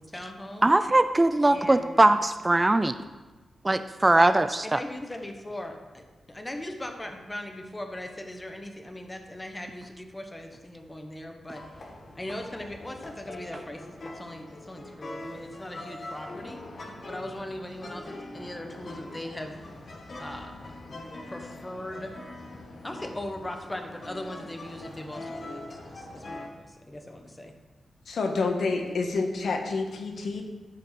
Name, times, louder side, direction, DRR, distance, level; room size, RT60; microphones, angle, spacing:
voice 1, 0.1-0.7 1.5-2.0 4.5-11.6 12.1-19.6 20.2-20.8 21.3-22.1 22.8-27.5, left 1 dB, 15° left, 4 dB, 1.2 m, -39 dB
voice 2, 0.6-2.9 3.6-4.8, right 2 dB, 20° right, 11 dB, 0.4 m, -21 dB
sound 1, 11.5-26.5, left 2 dB, 50° left, 1.7 m, -42 dB
voice 3, 28.1-30.4, left 3 dB, 75° left, 3 dB, 1.4 m, -28 dB
13.0 x 5.3 x 5.9 m, 1.2 s
wide cardioid pair, 110°, 0 cm